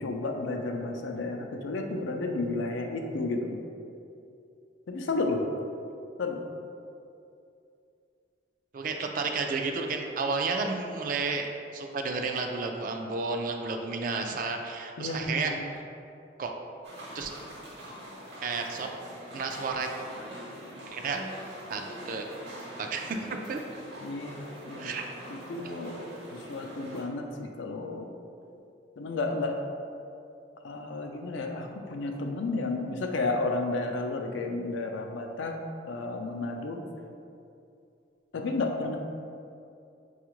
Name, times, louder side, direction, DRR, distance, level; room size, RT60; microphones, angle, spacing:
voice 1, 0.0-3.6 4.9-5.4 6.2-6.4 15.0-15.6 24.0-24.9 25.3-26.0 26.3-28.1 29.0-29.6 30.6-35.6 35.9-36.8 38.3-39.0, left 3 dB, 80° left, 3 dB, 0.4 m, -32 dB
voice 2, 8.7-15.6 16.4-16.5 17.1-17.3 18.4-18.9 19.3-19.9 20.9-21.2 21.7-22.2 22.8-23.6 24.8-25.0, right 4 dB, 45° right, 3 dB, 0.3 m, -31 dB
sound 1, 16.8-27.0, equal, 65° right, 0.9 m, -43 dB
5.6 x 2.4 x 3.0 m, 2.6 s
head